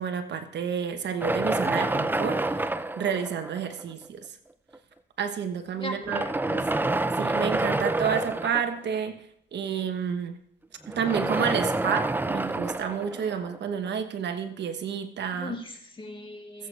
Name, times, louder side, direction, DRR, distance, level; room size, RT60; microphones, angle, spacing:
voice 1, 0.0-2.4 3.0-4.2 5.2-6.6 7.2-9.2 9.5-10.4 10.9-15.5, right 7 dB, 60° right, 7 dB, 1.2 m, -30 dB
sound 1, 1.2-3.9 4.7-4.8 5.9-9.0 10.8-13.9, right 2 dB, 10° right, 0.5 m, -28 dB
voice 2, 5.8-6.6 15.3-16.7, left 2 dB, 25° left, 3 dB, 2.2 m, -38 dB
20.0 x 8.0 x 3.4 m, 0.71 s
cardioid pair, 90°, 20 cm